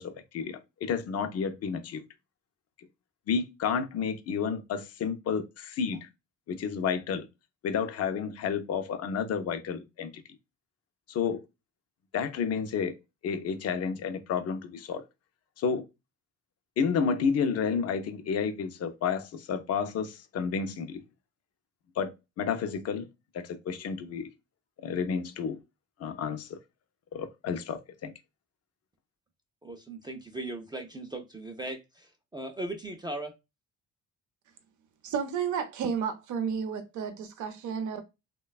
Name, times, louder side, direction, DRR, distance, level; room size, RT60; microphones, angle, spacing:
voice 1, 0.0-2.0 3.3-6.1 6.5-7.3 7.6-10.2 11.1-11.4 12.1-13.0 13.2-15.0 15.6-15.9 16.8-21.0 22.0-23.1 23.3-24.3 24.8-25.6 26.0-26.6 27.1-28.1, left 6 dB, 55° left, 0.5 m, -31 dB
voice 2, 29.6-33.3, right 2 dB, 15° right, 0.4 m, -38 dB
voice 3, 35.0-38.0, right 7 dB, 75° right, 0.6 m, -32 dB
3.1 x 2.2 x 2.3 m
cardioid pair, 90°, 30 cm